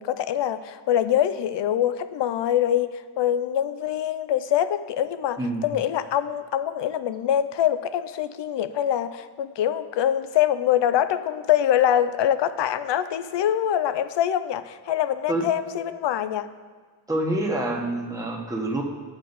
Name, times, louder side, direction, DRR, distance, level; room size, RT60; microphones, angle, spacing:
voice 1, 0.0-16.5, left 10 dB, 85° left, 13 dB, 0.5 m, -24 dB
voice 2, 17.1-18.8, right 1 dB, 10° right, -1 dB, 1.0 m, -26 dB
8.8 x 8.3 x 4.0 m, 1.5 s
wide cardioid pair, 125°, 41 cm